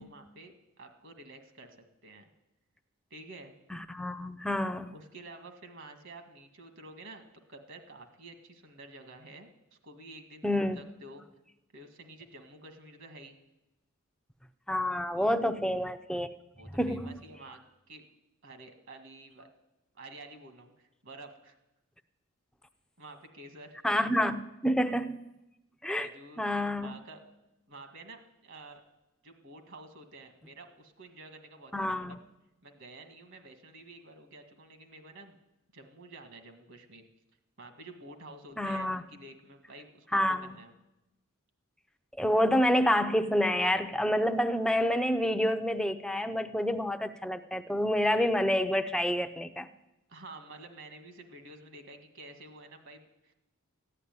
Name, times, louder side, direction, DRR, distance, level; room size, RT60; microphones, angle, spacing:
voice 1, 0.0-1.8 2.0-2.2 3.1-3.5 4.9-7.2 7.5-9.5 9.8-11.2 11.7-13.4 15.2-15.4 16.6-18.1 18.4-19.5 19.9-21.6 23.0-23.8 26.0-27.2 27.7-28.8 29.2-32.2 32.6-35.4 35.7-37.0 37.6-40.7 50.1-53.3, right 2 dB, 55° right, 7 dB, 1.9 m, -50 dB
voice 2, 3.7-4.9 10.4-10.8 14.7-16.3 16.7-17.1 23.8-25.2 25.8-26.1 26.4-27.0 31.7-32.2 38.6-39.0 40.1-40.6 42.2-49.7, equal, 5° left, 7 dB, 0.6 m, -28 dB
14.5 x 9.9 x 9.4 m, 0.96 s
head